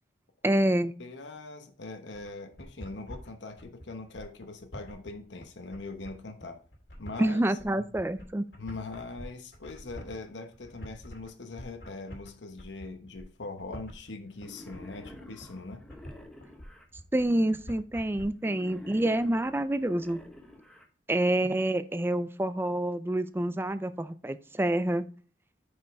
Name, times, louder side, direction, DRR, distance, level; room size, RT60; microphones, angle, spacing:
voice 1, 0.4-0.9 7.2-8.4 17.1-20.2 21.1-25.1, right 1 dB, 15° right, 0.4 m, -27 dB
voice 2, 1.0-6.6 7.0-7.4 7.8-7.9 8.6-15.9, left 3 dB, 85° left, 1.0 m, -42 dB
sound 1, 2.1-18.2, equal, 65° left, 2.3 m, -47 dB
Wild animals, 14.4-16.9 18.4-20.9, left 1 dB, 5° left, 1.0 m, -49 dB
6.7 x 5.4 x 4.6 m
head